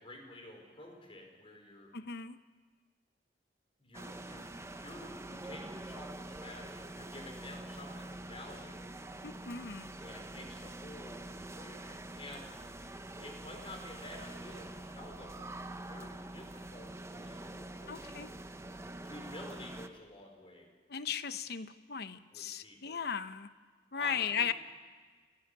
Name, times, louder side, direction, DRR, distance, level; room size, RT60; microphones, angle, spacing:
voice 1, 0.0-1.9 3.8-8.9 10.0-12.5 13.2-18.3 19.0-20.7 22.3-23.0 23.9-24.5, left 1 dB, 30° left, 2 dB, 4.4 m, -50 dB
voice 2, 1.9-2.4 9.2-9.9 17.9-18.3 20.9-23.5 23.9-24.5, left 7 dB, 65° left, 12 dB, 0.9 m, -36 dB
sound 1, 3.9-19.9, right 1 dB, 15° right, 0.8 m, -46 dB
30.0 x 11.5 x 9.7 m, 1.5 s
head